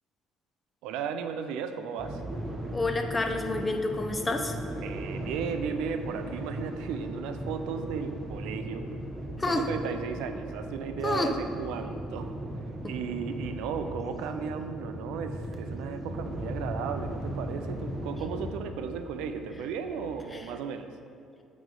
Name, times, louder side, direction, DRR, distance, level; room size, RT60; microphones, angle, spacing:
voice 1, 0.8-2.2 4.8-8.9 9.5-12.3 12.8-20.9, right 6 dB, 80° right, 8 dB, 0.4 m, -35 dB
sound 1, 2.0-18.5, right 1 dB, 25° right, 0.9 m, -37 dB
voice 2, 2.7-4.6 9.4-9.7 11.0-11.3 12.8-12.9, left 2 dB, 25° left, 5 dB, 0.6 m, -29 dB
sound 2, 5.7-20.3, left 1 dB, 40° left, 1.2 m, -52 dB
8.8 x 3.0 x 3.8 m, 2.5 s
supercardioid pair, 70°, 0 cm